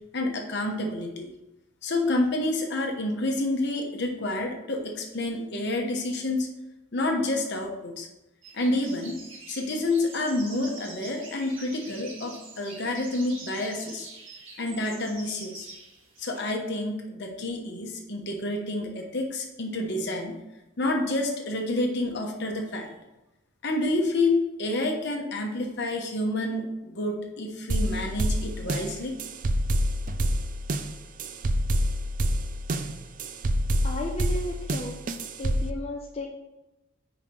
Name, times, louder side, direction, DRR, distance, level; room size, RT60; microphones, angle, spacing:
voice 1, 0.1-1.3 1.8-6.5 6.9-8.1 8.5-9.2 9.5-14.1 14.6-15.7 16.2-20.4 20.8-22.9 23.6-29.2, left 2 dB, 55° left, 2 dB, 1.1 m, -28 dB
sound 1, 8.4-16.5, right 3 dB, 70° right, 1.8 m, -45 dB
sound 2, 27.7-35.7, right 1 dB, 40° right, 0.4 m, -27 dB
voice 2, 33.8-35.0 35.4-36.2, left 1 dB, 30° left, -1 dB, 0.6 m, -34 dB
5.0 x 4.9 x 5.2 m, 0.96 s
head